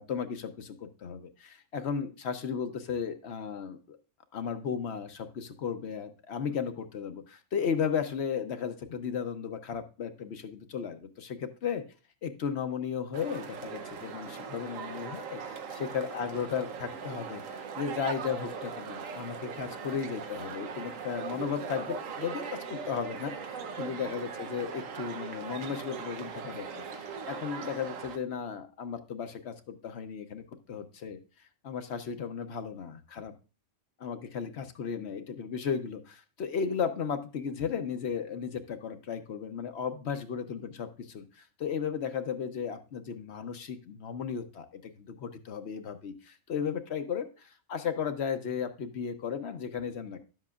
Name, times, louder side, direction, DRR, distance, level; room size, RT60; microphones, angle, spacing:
voice 1, 0.0-4.0 4.3-11.8 12.2-15.4 15.7-31.2 31.6-33.3 34.0-50.2, left 7 dB, 60° left, 8 dB, 0.9 m, -35 dB
sound 1, 13.1-28.2, right 6 dB, 85° right, 1.3 m, -40 dB
11.0 x 7.6 x 2.3 m, 0.34 s
omnidirectional pair, 1.3 m